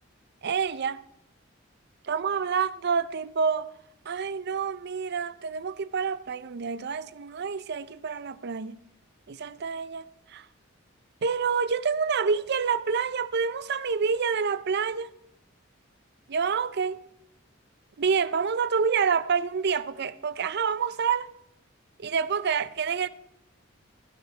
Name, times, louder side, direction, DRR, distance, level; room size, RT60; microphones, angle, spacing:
voice 1, 0.4-1.0 2.0-3.7 4.1-8.8 9.3-10.5 11.2-15.1 16.3-17.0 18.0-21.3 22.0-23.1, right 6 dB, 55° right, 0.5 m, -28 dB
15.0 x 14.5 x 3.3 m
head